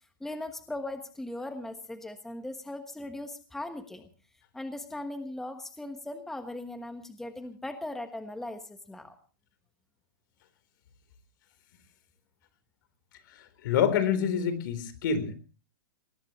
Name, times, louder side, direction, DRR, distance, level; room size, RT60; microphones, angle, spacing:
voice 1, 0.2-4.1 4.5-9.1, left 1 dB, 5° left, 7 dB, 1.2 m, -39 dB
voice 2, 13.6-15.4, left 7 dB, 55° left, 12 dB, 4.0 m, -26 dB
21.0 x 19.5 x 3.1 m, 0.36 s
hypercardioid pair, 145°, 12 cm